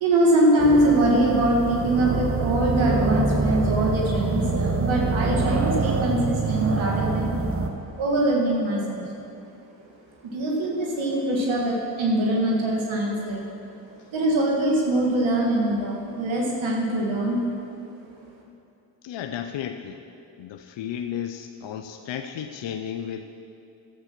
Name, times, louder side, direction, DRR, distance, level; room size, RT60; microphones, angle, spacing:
voice 1, 0.0-7.3 8.0-9.1 10.3-13.4 14.1-17.4, right 1 dB, 80° right, -2 dB, 1.7 m, -23 dB
sound 1, 0.6-7.7, right 3 dB, 30° right, 1.2 m, -25 dB
voice 2, 19.0-20.0 20.4-23.2, left 9 dB, 70° left, 6 dB, 0.7 m, -33 dB
11.0 x 8.0 x 5.9 m, 2.6 s
supercardioid pair, 40°, 46 cm